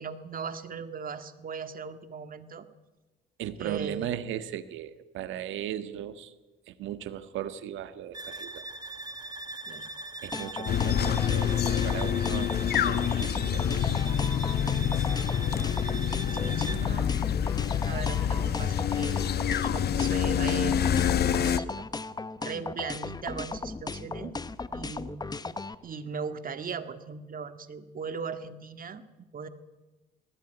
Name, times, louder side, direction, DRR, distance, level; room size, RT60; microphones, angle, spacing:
voice 1, 0.0-2.7 3.6-4.1 9.7-9.9 16.3-17.1 17.8-20.9 21.4-21.8 22.4-24.3 24.7-25.4 25.8-29.0 29.3-29.5, right 5 dB, 45° right, 10 dB, 1.9 m, -38 dB
voice 2, 3.4-6.3 6.7-8.7 10.2-12.5 12.8-13.7 15.4-15.5 16.7-16.8, right 11 dB, 85° right, 12 dB, 1.5 m, -37 dB
sound 1, 8.1-16.9, right 2 dB, 20° right, 2.9 m, -41 dB
sound 2, 10.3-25.7, left 3 dB, 20° left, 1.0 m, -36 dB
sound 3, 10.7-21.6, left 9 dB, 55° left, 1.0 m, -27 dB
19.5 x 16.0 x 9.2 m, 1.2 s
cardioid pair, 90°, 19 cm